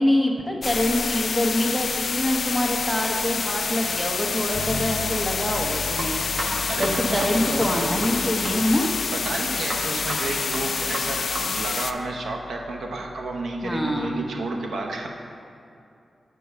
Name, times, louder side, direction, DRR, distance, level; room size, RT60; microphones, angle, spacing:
voice 1, 0.0-6.2 6.8-8.9 13.6-14.3, left 1 dB, 5° right, 1 dB, 1.1 m, -25 dB
sound 1, 0.6-11.9, left 5 dB, 65° left, 0.4 m, -27 dB
sound 2, 3.6-11.7, right 1 dB, 70° right, 1.2 m, -36 dB
Bass guitar, 4.5-14.3, left 3 dB, 25° right, 1.8 m, -40 dB
voice 2, 6.7-8.0 9.1-15.1, right 2 dB, 85° right, 1 dB, 0.7 m, -31 dB
8.4 x 4.6 x 6.6 m, 2.6 s
cardioid pair, 75°, 0 cm